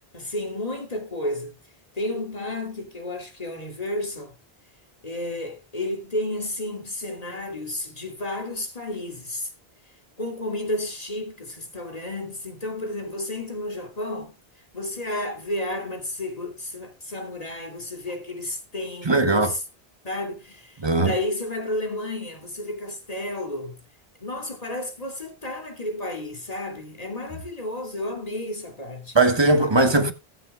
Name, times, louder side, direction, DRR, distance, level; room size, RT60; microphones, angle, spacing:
voice 1, 0.1-1.6 1.9-4.3 5.0-9.5 10.2-14.3 14.7-19.6 20.0-23.8 24.2-29.2, left 1 dB, 40° left, 2.7 m, -32 dB
voice 2, 19.0-19.5 20.8-21.1 29.1-30.1, right 2 dB, 25° right, 1.4 m, -19 dB
20.0 x 8.0 x 2.3 m
omnidirectional pair, 1.0 m